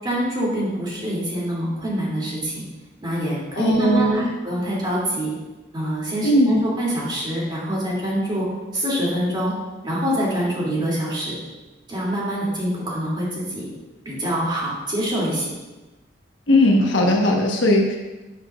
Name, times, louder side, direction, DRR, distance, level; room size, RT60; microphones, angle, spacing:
voice 1, 0.0-2.6 3.0-5.3 5.7-8.5 8.7-9.5 9.8-11.3 11.9-13.7 14.0-15.5, equal, 25° right, -6 dB, 2.8 m, -25 dB
voice 2, 3.6-4.3 6.2-6.6 16.5-18.0, left 1 dB, 80° left, 0 dB, 1.2 m, -18 dB
9.7 x 7.6 x 2.5 m, 1.2 s
head